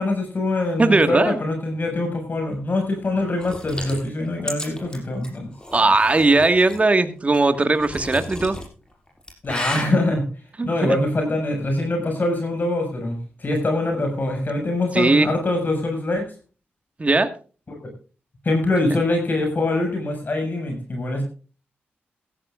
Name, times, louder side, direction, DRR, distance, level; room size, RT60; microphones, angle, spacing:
voice 1, 0.0-5.5 9.4-10.3 10.6-16.2 17.7-17.8 18.4-21.2, left 2 dB, 45° left, 3 dB, 6.3 m, -24 dB
voice 2, 0.8-1.4 5.7-8.6 10.6-11.0 14.9-15.3 17.0-17.3, right 2 dB, 30° right, 9 dB, 1.7 m, -18 dB
sound 1, 3.4-6.8 7.3-8.7 9.1-9.9, equal, 20° left, 6.3 m, -33 dB
16.5 x 15.0 x 2.5 m, 0.37 s
cardioid pair, 65°, 4 cm